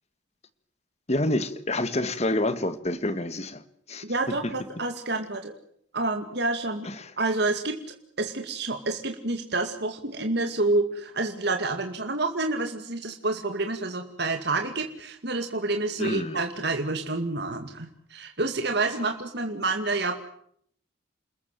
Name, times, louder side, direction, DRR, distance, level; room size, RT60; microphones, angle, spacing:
voice 1, 1.1-3.6 3.9-4.5 6.8-7.1 16.0-16.4, left 1 dB, 35° left, 1.8 m, -28 dB
voice 2, 4.0-5.5 5.9-6.9 7.2-7.7 8.2-20.2, right 2 dB, 55° right, 2.3 m, -28 dB
28.5 x 21.0 x 7.6 m
head